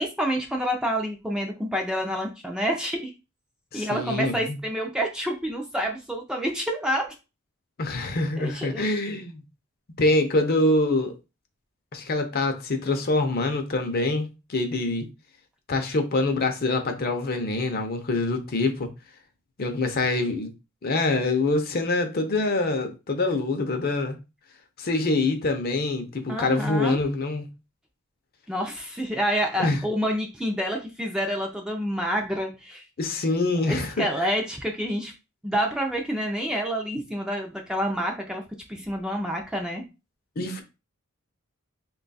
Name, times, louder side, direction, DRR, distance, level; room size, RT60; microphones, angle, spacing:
voice 1, 0.0-3.1 3.7-7.1 8.4-8.9 26.3-27.0 28.5-32.8 33.7-35.1 35.4-38.4 38.7-39.8, equal, 5° right, 0.5 m, -28 dB
voice 2, 3.7-4.6 7.8-9.4 10.0-11.2 11.9-15.1 15.7-18.9 19.6-20.5 20.8-24.2 24.8-27.5 29.6-29.8 33.0-34.3 40.4-40.6, left 2 dB, 45° left, 0.6 m, -25 dB
3.0 x 2.3 x 4.0 m
head